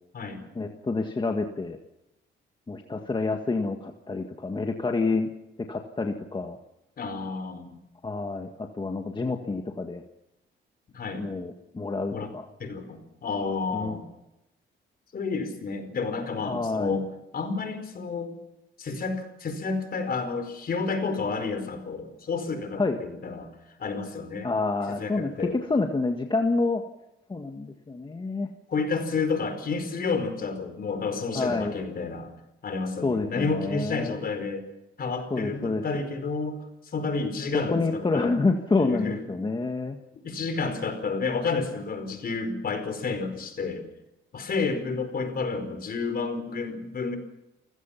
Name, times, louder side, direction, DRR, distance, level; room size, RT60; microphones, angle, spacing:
voice 1, 0.6-1.8 2.7-5.3 5.6-6.6 8.0-10.0 11.2-12.5 13.7-14.0 16.5-17.0 22.8-23.0 24.4-26.8 27.3-28.5 31.3-31.8 33.0-34.1 35.3-35.8 37.5-40.0, left 3 dB, 25° left, 4 dB, 1.8 m, -28 dB
voice 2, 7.0-7.8 10.9-11.3 12.1-12.3 12.6-14.1 15.1-17.1 17.3-18.3 18.8-23.5 23.8-24.5 24.9-25.5 28.7-32.3 32.6-34.6 35.0-36.6 36.8-38.3 38.8-39.2 40.2-43.8 44.3-47.2, left 4 dB, 50° left, 8 dB, 4.8 m, -30 dB
29.5 x 16.5 x 5.9 m, 0.89 s
cardioid pair, 90°, 20 cm